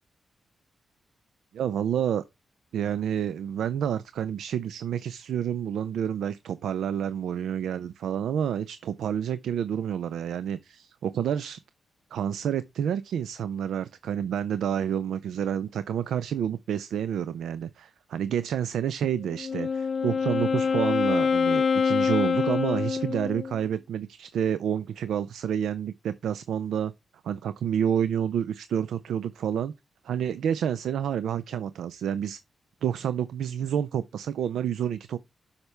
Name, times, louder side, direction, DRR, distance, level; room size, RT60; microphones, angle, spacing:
voice 1, 1.5-2.2 2.7-11.6 12.1-26.9 27.2-29.7 30.0-32.4 32.8-35.2, right 9 dB, 80° right, 0.4 m, -29 dB
Wind instrument woodwind instrument, 19.3-23.6, left 5 dB, 60° left, 0.3 m, -25 dB
7.9 x 5.8 x 3.3 m
supercardioid pair, 45°, 0 cm